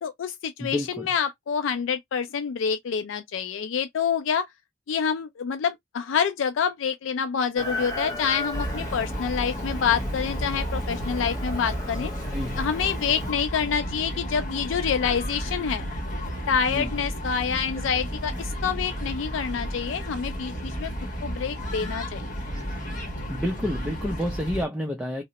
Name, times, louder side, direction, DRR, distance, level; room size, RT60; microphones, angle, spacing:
voice 1, 0.0-4.5 4.9-12.1 12.5-15.9 16.5-20.9 21.2-22.2, left 7 dB, 80° left, 0.4 m, -27 dB
voice 2, 0.6-1.1 12.3-12.6 16.7-16.9 23.3-25.2, equal, 5° right, 0.5 m, -29 dB
Chicken rooster, 7.6-13.3, left 1 dB, 20° left, 0.8 m, -36 dB
sound 1, 8.5-24.7, equal, 40° left, 1.2 m, -32 dB
2.9 x 2.0 x 3.9 m
head